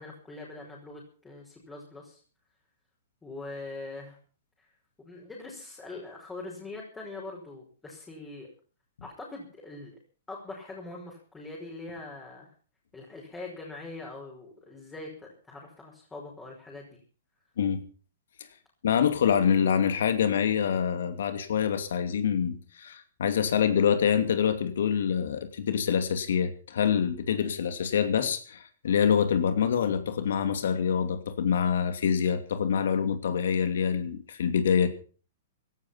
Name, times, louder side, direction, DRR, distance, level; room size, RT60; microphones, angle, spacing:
voice 1, 0.0-2.2 3.2-4.2 4.6-4.7 5.0-8.5 9.0-10.0 10.3-12.5 12.9-17.0, left 2 dB, 10° left, -2 dB, 5.5 m, -42 dB
voice 2, 18.8-34.9, left 7 dB, 75° left, 9 dB, 2.6 m, -26 dB
17.0 x 13.0 x 5.9 m, 0.39 s
hypercardioid pair, 140°, 0 cm